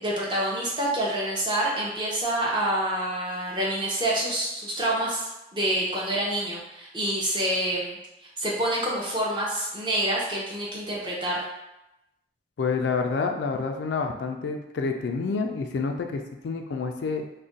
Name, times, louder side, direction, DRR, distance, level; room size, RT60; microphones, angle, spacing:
voice 1, 0.0-8.0 8.4-11.4, right 1 dB, 25° right, -4 dB, 0.6 m, -27 dB
voice 2, 12.6-17.2, left 4 dB, 75° left, 4 dB, 0.3 m, -28 dB
2.4 x 2.1 x 3.8 m, 0.92 s
head